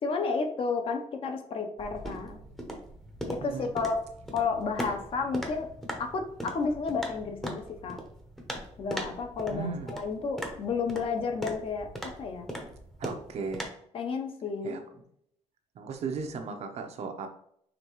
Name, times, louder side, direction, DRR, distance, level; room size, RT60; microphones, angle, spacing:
voice 1, 0.0-2.4 3.3-4.0 4.3-5.7 6.0-8.0 8.8-11.9 12.2-12.5 13.9-14.8, left 4 dB, 45° left, 4 dB, 0.7 m, -31 dB
sound 1, 1.8-13.7, equal, ahead, 0.7 m, -40 dB
voice 2, 9.5-9.9 13.0-13.7 14.6-14.8 15.8-17.3, right 5 dB, 60° right, 6 dB, 0.7 m, -36 dB
5.2 x 3.3 x 3.0 m, 0.70 s
cardioid pair, 165°, 13 cm